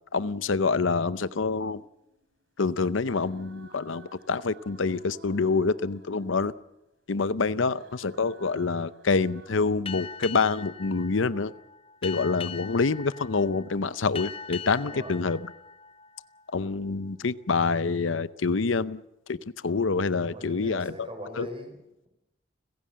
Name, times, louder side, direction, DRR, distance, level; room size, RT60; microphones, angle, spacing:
voice 1, 0.1-1.8 2.6-6.5 7.1-11.5 12.0-15.4 16.5-19.0 19.3-19.4 19.6-20.9 21.4-21.5, left 4 dB, 85° left, 15 dB, 0.7 m, -26 dB
sound 1, 0.9-2.4 3.0-6.8 7.7-9.8, right 2 dB, 75° right, 3.2 m, -54 dB
voice 2, 7.4-7.8 14.8-15.2 20.2-21.8, equal, 30° right, 6 dB, 5.2 m, -41 dB
Boat Water vehicle, 9.9-16.9, left 6 dB, 30° left, 0.7 m, -41 dB
29.5 x 16.0 x 7.6 m, 0.91 s
head